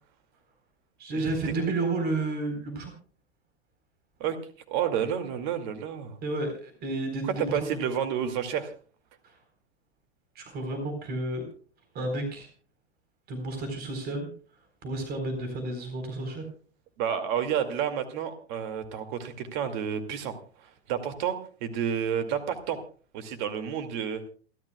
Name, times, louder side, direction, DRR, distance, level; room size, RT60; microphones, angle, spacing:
voice 1, 1.0-2.9 6.2-7.6 9.2-9.3 10.4-11.5 11.9-12.5 13.3-14.3 14.8-16.4, right 2 dB, 30° right, 6 dB, 4.0 m, -31 dB
voice 2, 4.7-6.2 7.2-8.7 17.0-20.4 20.6-22.8 23.1-24.2, right 8 dB, 45° right, 9 dB, 2.3 m, -30 dB
28.0 x 12.0 x 2.3 m, 0.41 s
figure-of-eight pair, 100°, 34 cm